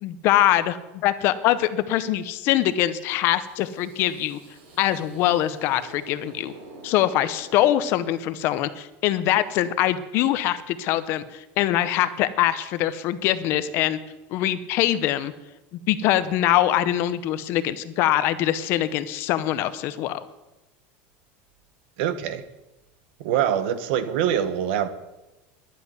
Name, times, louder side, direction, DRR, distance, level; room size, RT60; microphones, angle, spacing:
voice 1, 0.0-4.4 4.8-6.5 6.8-14.0 14.3-15.3 15.9-20.2, left 13 dB, 40° left, 13 dB, 0.7 m, -23 dB
sound 1, 3.3-8.3, right 2 dB, 90° right, 5.7 m, -47 dB
voice 2, 22.0-22.4 23.2-24.9, right 9 dB, 60° right, 12 dB, 1.2 m, -24 dB
11.5 x 8.2 x 9.4 m, 1.0 s
supercardioid pair, 175°, 6 cm